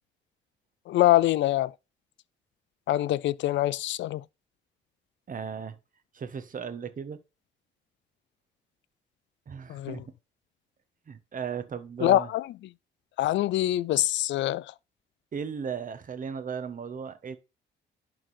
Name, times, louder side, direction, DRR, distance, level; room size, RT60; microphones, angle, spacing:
voice 1, 0.9-1.7 2.9-4.2 9.7-10.0 12.0-12.5 13.2-14.7, left 14 dB, 70° left, 0.4 m, -24 dB
voice 2, 5.3-5.8 6.1-7.2 9.5-10.1 11.1-12.3 15.3-17.4, right 6 dB, 45° right, 1.2 m, -36 dB
11.5 x 3.9 x 4.2 m
cardioid pair, 90°, 20 cm